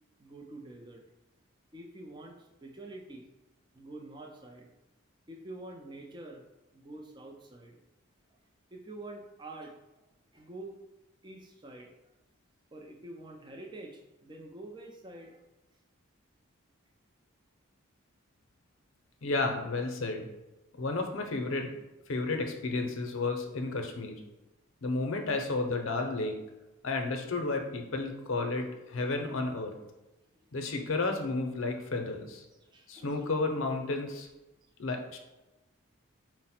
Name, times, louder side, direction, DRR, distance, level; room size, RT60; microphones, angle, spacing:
voice 1, 0.2-1.0 1.7-3.3 3.7-4.7 5.3-6.4 6.7-7.8 8.3-8.4 8.7-9.7 10.3-10.7 11.2-11.9 12.7-15.4 30.5-30.7 32.6-33.3 34.6-34.7, right 2 dB, 20° right, 1 dB, 0.4 m, -47 dB
voice 2, 19.2-20.3 20.8-21.8 22.1-24.2 24.8-26.3 26.8-29.7 30.5-32.4 32.9-34.3 34.8-35.2, left 3 dB, 70° left, 4 dB, 0.6 m, -32 dB
4.8 x 2.1 x 4.2 m, 1.0 s
head